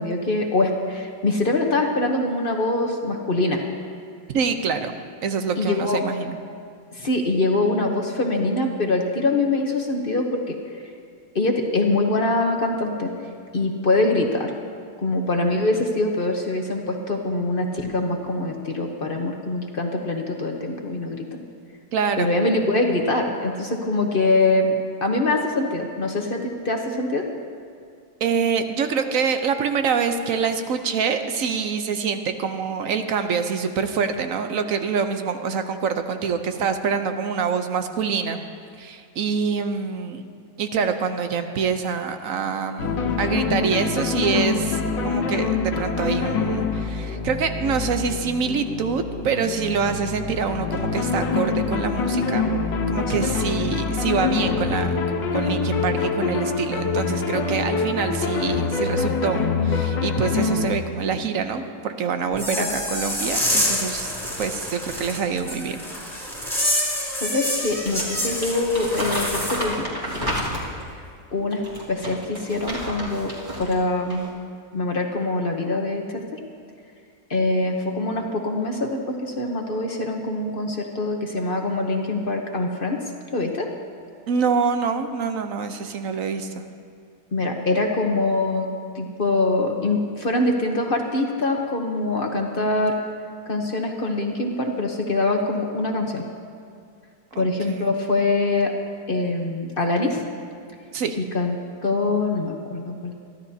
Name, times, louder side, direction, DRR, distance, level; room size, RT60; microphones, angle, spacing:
voice 1, 0.0-3.6 5.6-6.0 6.9-10.6 11.3-13.1 13.5-14.5 15.0-21.3 22.2-27.3 62.6-62.7 66.6-66.7 67.2-69.9 70.1-70.5 71.3-73.3 73.6-74.3 74.7-76.2 77.3-83.0 83.3-83.7 87.3-93.0 93.5-96.2 97.4-98.7 99.1-100.2 101.2-101.5 101.8-103.2, left 2 dB, 40° left, 2 dB, 0.9 m, -24 dB
voice 2, 4.3-4.9 5.2-6.4 21.9-22.3 28.2-38.4 38.8-40.2 40.6-52.4 52.9-54.9 55.3-65.8 84.3-86.6 97.3-97.9 100.9-101.2, right 6 dB, 60° right, 7 dB, 1.0 m, -25 dB
sound 1, 42.8-60.7, left 4 dB, 85° left, 1.7 m, -25 dB
sound 2, 62.3-69.6, equal, ahead, 2.6 m, -27 dB
Crumpling crinkling, 67.7-70.9 71.5-73.8 74.1-74.3, equal, 20° right, 2.3 m, -31 dB
23.0 x 13.5 x 2.8 m, 2.3 s
omnidirectional pair, 1.9 m